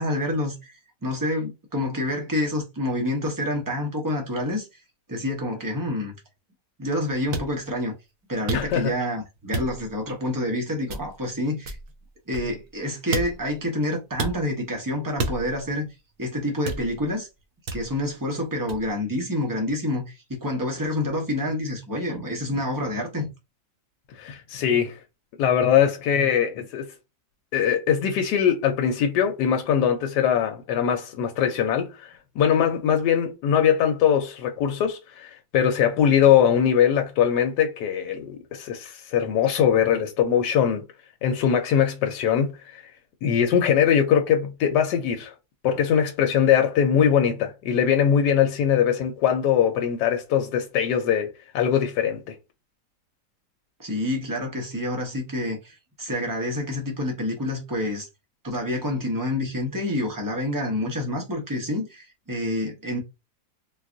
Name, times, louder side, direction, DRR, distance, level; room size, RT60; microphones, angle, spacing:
voice 1, 0.0-4.7 5.1-6.2 6.8-7.9 8.3-11.8 12.3-15.9 16.2-17.3 17.7-23.3 53.8-58.1 58.4-63.0, left 1 dB, 30° right, 0.3 m, -28 dB
sound 1, 7.3-7.5 8.5-8.9 9.5-9.9 10.9-11.3 11.6-12.8 13.1-13.6 14.2-14.4 15.2-15.7 16.7-17.1 17.7-18.0 18.7-18.9, right 3 dB, 65° right, 0.9 m, -31 dB
voice 2, 8.5-8.9 24.2-25.0 25.4-26.9 27.5-40.8 41.2-42.8 43.2-45.3 45.6-52.3, left 8 dB, 85° left, 1.2 m, -21 dB
3.9 x 2.3 x 2.5 m
omnidirectional pair, 1.8 m